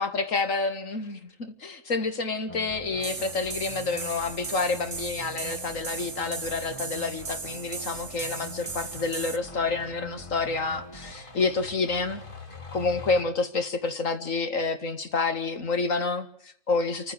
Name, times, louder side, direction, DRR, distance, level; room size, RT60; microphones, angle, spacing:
voice 1, 0.0-12.2 12.7-17.1, left 4 dB, 85° left, 8 dB, 2.5 m, -29 dB
sound 1, 2.5-11.1, left 1 dB, 25° left, 2.1 m, -44 dB
sound 2, 3.0-9.4, right 5 dB, 45° right, 1.5 m, -37 dB
sound 3, 3.7-13.2, left 4 dB, 40° left, 2.2 m, -48 dB
28.5 x 15.0 x 7.4 m, 0.69 s
omnidirectional pair, 1.3 m